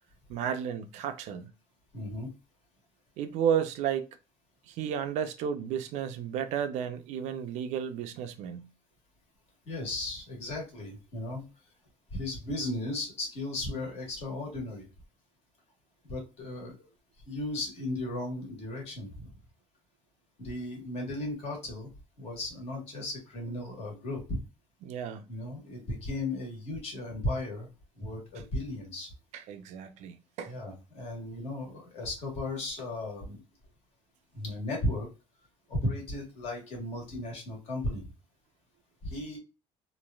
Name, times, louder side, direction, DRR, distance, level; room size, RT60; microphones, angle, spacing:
voice 1, 0.3-1.5 3.2-4.1 4.7-8.7 24.8-25.3 29.3-30.5, right 8 dB, 75° right, 0.5 m, -32 dB
voice 2, 1.9-2.3 9.6-11.4 12.1-14.9 16.1-16.9 17.3-19.3 20.4-21.9 22.2-24.4 25.3-27.7 28.0-29.1 30.4-33.4 34.3-35.1 35.7-38.1 39.0-39.4, left 1 dB, 55° left, 1.5 m, -35 dB
3.1 x 2.5 x 2.3 m
cardioid pair, 165°, 12 cm